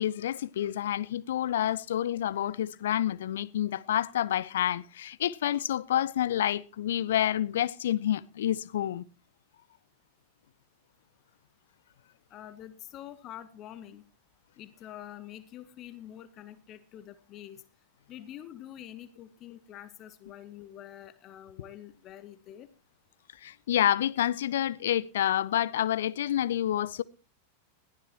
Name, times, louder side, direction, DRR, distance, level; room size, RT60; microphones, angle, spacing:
voice 1, 0.0-9.0 23.4-27.0, left 11 dB, 60° left, 0.6 m, -28 dB
voice 2, 12.3-14.0 14.6-17.6 18.1-22.7, left 11 dB, 35° left, 1.2 m, -46 dB
20.5 x 15.0 x 2.9 m
figure-of-eight pair, 90°, 0 cm